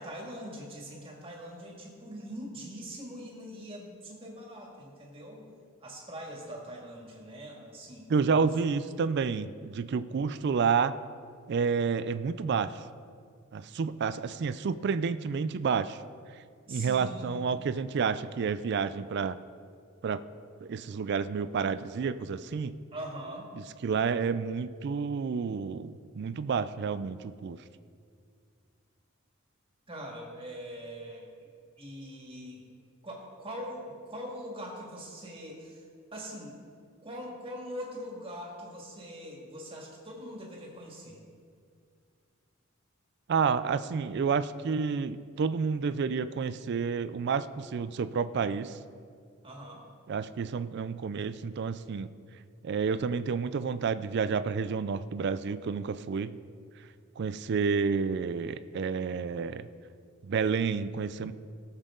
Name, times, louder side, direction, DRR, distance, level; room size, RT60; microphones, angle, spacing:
voice 1, 0.0-5.5 5.8-8.8 16.6-17.5 22.9-23.5 29.9-31.3 31.8-32.6 33.0-35.8 36.1-36.6 37.0-41.2 49.4-49.8, equal, 25° right, -2 dB, 2.1 m, -42 dB
voice 2, 8.1-11.0 11.5-12.8 13.5-16.0 16.7-19.4 20.0-20.2 20.6-22.7 23.8-27.6 43.3-48.8 50.1-52.1 52.6-56.3 57.2-59.7 60.2-61.3, right 5 dB, 55° right, 13 dB, 0.4 m, -30 dB
18.0 x 7.3 x 3.8 m, 2.2 s
head